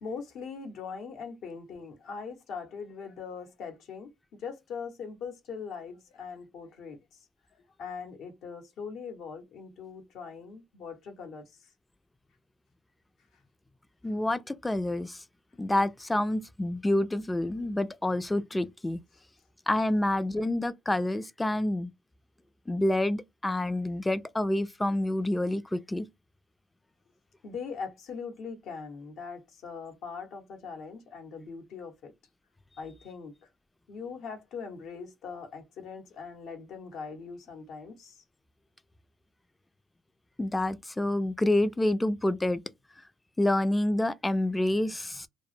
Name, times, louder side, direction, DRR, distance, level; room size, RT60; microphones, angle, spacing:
voice 1, 0.0-4.1 4.4-7.0 7.8-11.4 27.4-32.1 32.8-33.5 33.9-38.2, left 5 dB, 70° left, 0.8 m, -41 dB
voice 2, 14.0-15.2 15.6-19.0 19.7-21.9 22.7-26.1 40.4-42.6 43.4-45.3, left 1 dB, 15° left, 0.3 m, -28 dB
2.1 x 2.0 x 3.1 m
supercardioid pair, 70°, 0 cm